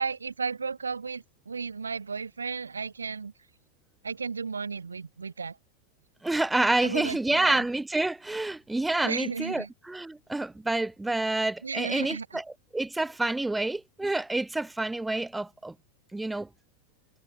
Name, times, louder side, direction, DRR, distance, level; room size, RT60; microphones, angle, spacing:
voice 1, 0.0-3.3 4.0-5.6 6.8-7.6 9.0-9.7 11.6-12.3, right 5 dB, 75° right, 0.3 m, -34 dB
voice 2, 6.2-15.7 16.1-16.5, right 2 dB, 5° right, 0.8 m, -28 dB
figure-of-eight pair, 90°, 0 cm